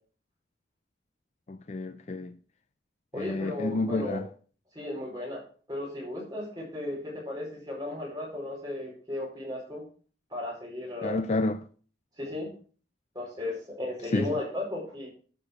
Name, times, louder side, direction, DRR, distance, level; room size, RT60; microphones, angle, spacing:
voice 1, 1.5-2.3 3.2-4.3 11.0-11.6 14.1-14.3, left 2 dB, 35° left, 0.4 m, -29 dB
voice 2, 3.1-4.2 4.7-5.4 5.7-9.8 10.3-11.2 12.2-12.5 13.1-15.1, left 1 dB, 20° right, 4.7 m, -35 dB
12.0 x 4.9 x 6.3 m
head